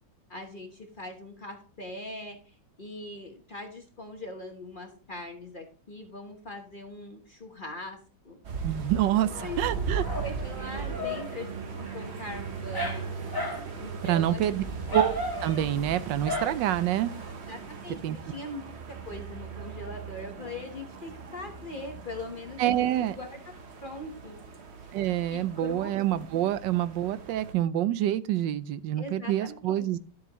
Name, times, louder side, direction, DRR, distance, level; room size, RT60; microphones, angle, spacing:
voice 1, 0.3-8.0 8.2-8.7 9.4-9.9 10.1-11.5 11.8-13.1 13.8-14.6 17.5-23.4 23.8-24.4 24.8-24.9 25.3-25.9 26.4-26.5 29.0-29.9, left 1 dB, 35° left, 3 dB, 1.1 m, -41 dB
sound 1, 8.4-27.5, right 5 dB, 45° right, 1.1 m, -38 dB
voice 2, 8.6-10.0 14.0-14.6 14.9-15.1 15.4-17.1 18.0-18.2 22.6-23.1 24.9-30.0, right 12 dB, 90° right, 15 dB, 1.3 m, -27 dB
Dog, 9.2-17.3, left 1 dB, 15° left, 1.4 m, -37 dB
12.0 x 7.6 x 3.0 m, 0.40 s
omnidirectional pair, 1.9 m